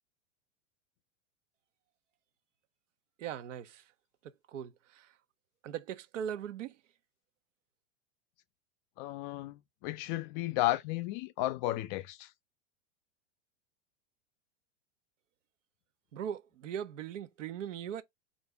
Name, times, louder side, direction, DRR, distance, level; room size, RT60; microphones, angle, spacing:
voice 1, 3.2-3.8 4.5-5.1 5.6-6.8 16.1-18.0, right 9 dB, 80° right, 0.8 m, -39 dB
voice 2, 9.0-12.3, left 16 dB, 40° left, 0.4 m, -33 dB
3.9 x 2.6 x 3.3 m
hypercardioid pair, 115°, 37 cm